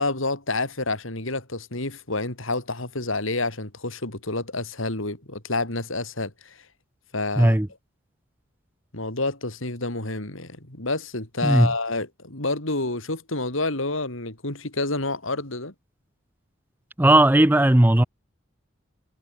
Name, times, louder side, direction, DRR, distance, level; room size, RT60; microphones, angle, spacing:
voice 1, 0.0-6.5 7.1-7.6 8.9-15.7, left 2 dB, 75° left, 4.3 m, -28 dB
voice 2, 7.4-7.7 11.4-11.7 17.0-18.0, right 1 dB, 10° right, 0.5 m, -16 dB
head